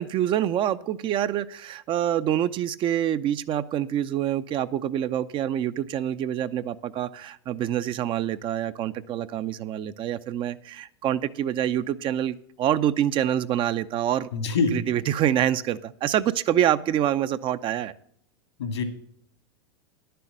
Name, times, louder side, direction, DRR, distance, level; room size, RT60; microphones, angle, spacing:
voice 1, 0.0-14.3 14.7-17.9, right 11 dB, 40° right, 11 dB, 0.7 m, -26 dB
voice 2, 14.3-14.8 18.6-18.8, left 4 dB, 80° left, 8 dB, 2.4 m, -24 dB
11.5 x 6.9 x 7.3 m, 0.64 s
hypercardioid pair, 90°, 14 cm